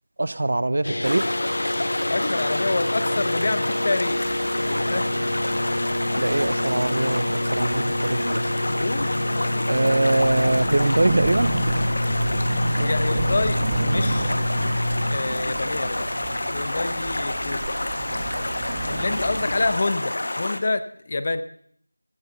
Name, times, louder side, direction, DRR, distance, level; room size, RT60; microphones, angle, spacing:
voice 1, 0.2-1.3 6.2-7.3 7.5-8.4 9.7-11.5, right 2 dB, 45° right, 18 dB, 0.5 m, -22 dB
sound 1, 0.8-15.2, left 1 dB, 70° left, 0.8 m, -27 dB
Stream, 1.0-20.6, left 1 dB, 50° left, 1.4 m, -29 dB
voice 2, 2.1-4.3 4.9-5.1 8.8-10.0 12.8-14.3 15.0-16.1 16.5-17.7 18.8-21.4, left 3 dB, 30° left, 12 dB, 0.7 m, -27 dB
sound 2, 4.0-19.8, right 2 dB, 15° right, 1.3 m, -32 dB
14.5 x 9.3 x 6.9 m, 0.63 s
figure-of-eight pair, 175°, 0 cm